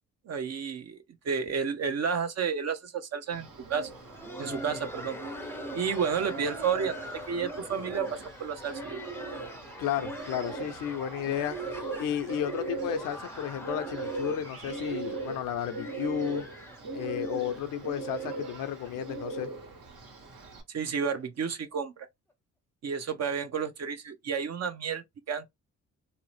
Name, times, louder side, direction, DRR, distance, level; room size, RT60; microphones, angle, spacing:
voice 1, 0.3-1.0 1.2-3.9 4.4-5.2 5.7-7.0 7.3-9.0 20.7-22.1 22.8-25.5, right 6 dB, 50° right, 0.7 m, -31 dB
Bird, 3.3-20.6, right 3 dB, 70° right, 1.4 m, -39 dB
Laughter, 3.8-19.4 19.7-19.8 20.4-20.5 21.0-21.2 22.3-22.4, left 1 dB, 5° left, 0.6 m, -46 dB
voice 2, 4.5-4.8 9.8-11.6 12.0-16.4 16.9-19.5, left 10 dB, 75° left, 0.6 m, -33 dB
2.8 x 2.0 x 3.0 m
supercardioid pair, 65°, 33 cm